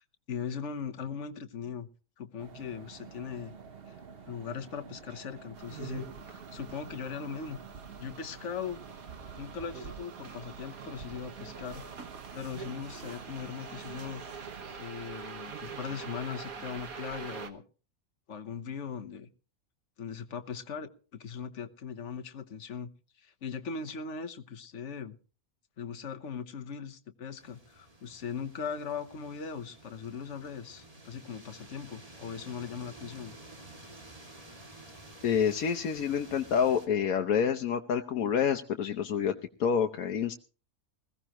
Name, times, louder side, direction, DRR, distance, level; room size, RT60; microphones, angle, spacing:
voice 1, 0.3-1.9 2.2-3.5 3.9-4.0 4.3-7.6 8.0-8.8 9.4-11.9 12.3-14.2 14.8-17.6 18.3-19.3 20.0-22.9 23.2-25.2 25.8-33.4, left 6 dB, 60° left, 7 dB, 1.4 m, -39 dB
sound 1, 2.4-14.7, right 6 dB, 45° right, 1.1 m, -50 dB
sound 2, 5.5-17.5, right 5 dB, 85° right, 1.9 m, -44 dB
sound 3, 27.4-36.9, right 2 dB, 25° right, 2.4 m, -51 dB
voice 2, 35.2-39.3 39.6-40.3, left 7 dB, 90° left, 5 dB, 1.3 m, -28 dB
20.5 x 16.0 x 3.0 m, 0.37 s
omnidirectional pair, 1.5 m